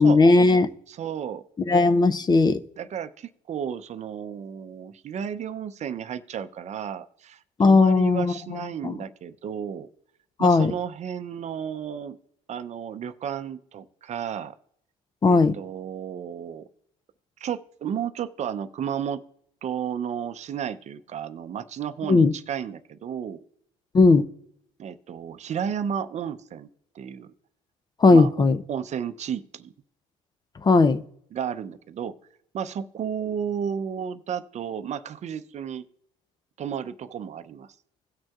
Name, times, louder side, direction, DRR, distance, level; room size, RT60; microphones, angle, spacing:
voice 1, 0.0-0.7 1.7-2.6 7.6-8.9 10.4-10.7 15.2-15.5 22.1-22.3 23.9-24.3 28.0-28.6 30.6-31.0, left 3 dB, 25° left, 0.5 m, -17 dB
voice 2, 0.9-1.4 2.8-9.9 10.4-12.2 12.5-14.5 15.3-16.7 17.4-19.2 19.6-23.4 24.8-26.7 26.9-27.3 28.1-28.3 28.7-29.7 31.3-32.2 32.5-35.8 36.6-37.7, right 8 dB, 45° right, 0.6 m, -33 dB
17.0 x 6.2 x 2.4 m
supercardioid pair, 80°, 16 cm